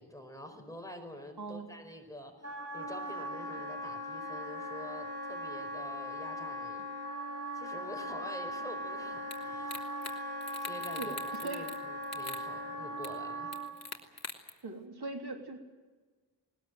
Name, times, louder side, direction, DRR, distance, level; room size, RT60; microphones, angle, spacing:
voice 1, 0.0-6.9 7.5-9.9 10.6-13.6, left 1 dB, 10° left, 4 dB, 4.9 m, -47 dB
voice 2, 1.4-1.7 11.0-11.7 14.6-15.6, right 3 dB, 70° right, 2 dB, 3.3 m, -40 dB
Wind instrument woodwind instrument, 2.4-13.7, equal, 40° right, 5.9 m, -39 dB
sound 1, 9.3-9.4 9.7-10.1 10.4-11.8 12.0-12.4 13.0-13.1 13.5-14.5, left 3 dB, 40° left, 3.0 m, -42 dB
20.5 x 20.5 x 9.3 m, 1.4 s
wide cardioid pair, 80°, 40 cm